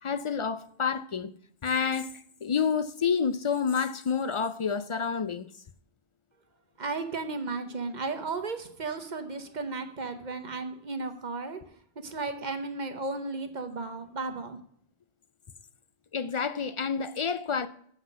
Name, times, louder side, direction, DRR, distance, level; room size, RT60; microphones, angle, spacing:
voice 1, 0.0-1.3 1.6-5.5 16.1-17.7, left 6 dB, 55° left, 0.3 m, -29 dB
voice 2, 6.8-11.6 12.0-14.6, right 3 dB, 45° right, 1.0 m, -34 dB
7.8 x 5.7 x 7.1 m
omnidirectional pair, 1.1 m